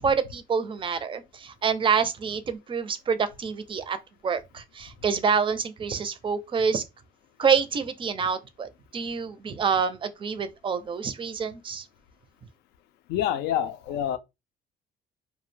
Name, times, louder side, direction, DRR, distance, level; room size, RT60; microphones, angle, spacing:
voice 1, 0.0-4.0 4.2-6.8 7.4-11.8, right 6 dB, 30° right, 0.4 m, -27 dB
voice 2, 13.1-14.2, left 11 dB, 85° left, 0.4 m, -27 dB
2.3 x 2.1 x 3.1 m
cardioid pair, 110°, 17 cm